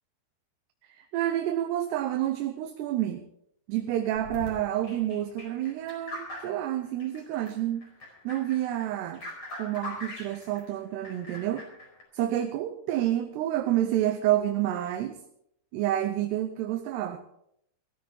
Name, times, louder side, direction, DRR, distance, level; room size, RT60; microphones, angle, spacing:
voice 1, 1.0-3.2 3.7-7.9 8.2-9.2 9.6-11.7 12.1-15.2 15.7-17.2, right 12 dB, 85° right, 6 dB, 3.0 m, -29 dB
sound 1, 4.1-7.5 7.8-10.7 11.0-12.0, left 1 dB, 30° left, 5.3 m, -42 dB
17.5 x 14.0 x 4.4 m, 0.73 s
omnidirectional pair, 4.7 m